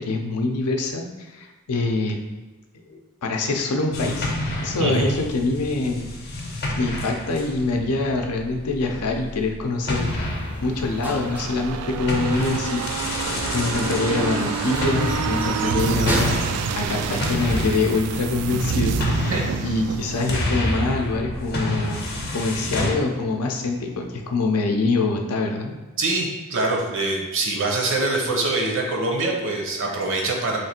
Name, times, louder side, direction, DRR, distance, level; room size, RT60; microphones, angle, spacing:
voice 1, 0.0-2.2 2.9-4.3 4.6-6.1 6.7-10.1 10.6-16.4 16.7-19.3 19.6-25.8, left 3 dB, 90° left, 3 dB, 0.5 m, -25 dB
sound 1, 3.9-9.5 9.9-22.9, left 1 dB, 45° left, 0.7 m, -29 dB
sound 2, 9.9-17.8, equal, 10° right, 0.4 m, -35 dB
sound 3, 10.7-24.2 24.5-24.6, right 6 dB, 90° right, 0.3 m, -29 dB
voice 2, 26.0-30.6, right 2 dB, 60° right, 1 dB, 0.7 m, -24 dB
3.1 x 2.5 x 4.2 m, 1.2 s
head